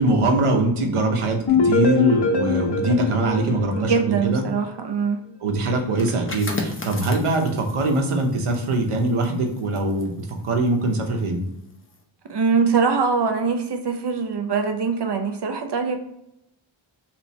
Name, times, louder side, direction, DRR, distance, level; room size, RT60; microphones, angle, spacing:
voice 1, 0.0-4.4 5.4-10.1 10.4-11.4, right 2 dB, 85° right, 3 dB, 0.9 m, -22 dB
sound 1, 1.5-4.4, left 4 dB, 55° left, 0.8 m, -22 dB
voice 2, 3.8-5.2 12.3-16.0, right 5 dB, 55° right, 5 dB, 0.7 m, -22 dB
sound 2, 5.9-11.4 11.7-12.0, left 2 dB, 25° left, 0.7 m, -36 dB
3.2 x 3.0 x 4.0 m, 0.79 s
wide cardioid pair, 90°, 50 cm